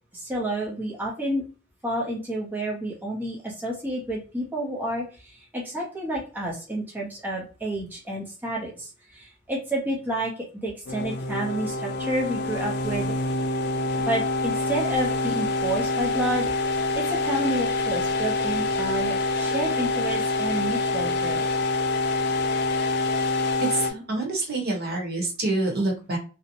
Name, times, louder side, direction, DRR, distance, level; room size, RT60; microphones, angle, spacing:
voice 1, 0.1-1.4 1.8-10.3 10.6-13.1 14.1-16.5 16.9-21.5, right 1 dB, 10° right, -3 dB, 0.6 m, -30 dB
sound 1, 10.9-23.9, left 2 dB, 55° left, 0.4 m, -26 dB
voice 2, 23.6-26.2, right 2 dB, 55° right, 0 dB, 0.9 m, -27 dB
2.6 x 2.0 x 2.6 m, 0.35 s
head